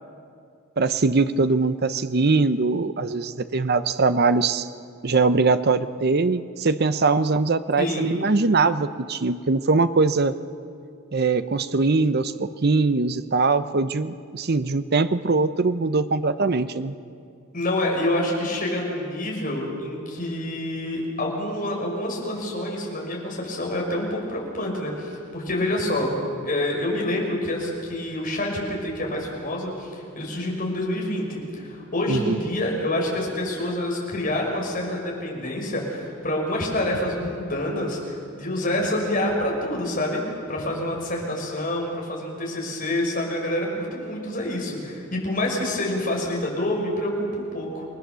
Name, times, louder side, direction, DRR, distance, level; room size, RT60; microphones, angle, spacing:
voice 1, 0.8-4.7 5.0-10.3 11.1-16.9 32.1-32.4, right 3 dB, 50° right, 12 dB, 0.7 m, -22 dB
voice 2, 7.8-8.1 17.5-26.2 26.4-40.2 40.5-47.9, left 1 dB, 45° left, -1 dB, 5.9 m, -27 dB
29.0 x 20.5 x 7.0 m, 2.4 s
head